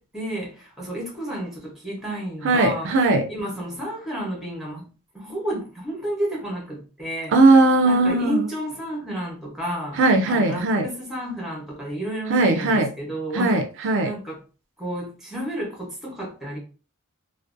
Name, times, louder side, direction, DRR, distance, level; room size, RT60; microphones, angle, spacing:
voice 1, 0.1-2.9 3.3-4.9 5.1-7.4 7.8-10.0 10.2-13.6 14.0-14.4 14.8-16.6, right 1 dB, ahead, 0.8 m, -31 dB
voice 2, 2.4-3.3 7.3-8.5 10.0-10.9 12.3-12.9 13.3-14.1, right 2 dB, 55° right, 0.4 m, -18 dB
2.5 x 2.1 x 2.4 m
head